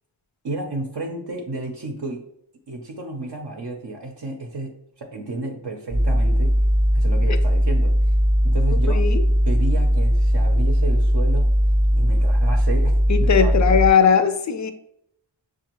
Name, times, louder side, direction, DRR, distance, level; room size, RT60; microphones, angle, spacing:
voice 1, 0.4-2.2 2.7-6.6 6.9-7.9 8.4-9.1 9.4-11.6 11.9-13.5, right 2 dB, 55° right, 0.6 m, -32 dB
sound 1, 5.9-13.9, equal, 15° right, 0.6 m, -18 dB
voice 2, 8.9-9.2 13.1-14.7, left 7 dB, 40° left, 0.4 m, -19 dB
6.5 x 2.4 x 2.9 m
wide cardioid pair, 70°, 47 cm